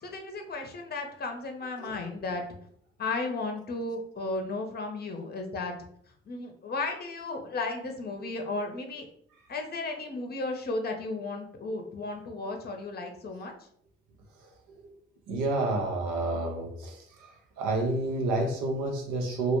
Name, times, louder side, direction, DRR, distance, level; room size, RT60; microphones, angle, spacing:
voice 1, 0.0-2.4 3.0-5.7 6.3-9.1 9.5-13.5, left 3 dB, 35° left, 4 dB, 0.6 m, -34 dB
voice 2, 15.3-16.9 17.6-19.6, right 2 dB, 80° right, 1 dB, 0.6 m, -29 dB
2.3 x 2.0 x 2.9 m, 0.65 s
hypercardioid pair, 45°, 29 cm